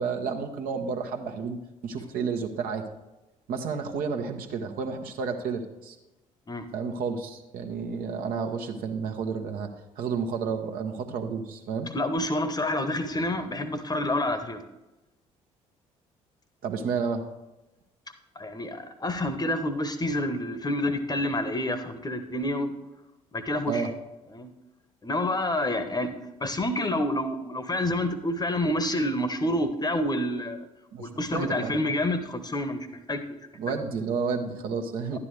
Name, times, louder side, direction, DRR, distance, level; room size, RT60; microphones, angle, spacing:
voice 1, 0.0-2.8 3.5-6.0 6.7-9.7 10.0-11.9 16.6-17.2 23.7-23.9 30.9-31.7 33.6-35.2, right 5 dB, 60° right, 4 dB, 1.1 m, -31 dB
voice 2, 11.9-14.6 18.3-22.7 23.3-23.9 24.3-24.5 25.0-26.1 26.4-30.6 31.0-33.2 33.7-33.8 35.1-35.2, left 1 dB, 25° left, 10 dB, 1.1 m, -28 dB
11.5 x 9.8 x 3.3 m, 0.99 s
figure-of-eight pair, 50°, 17 cm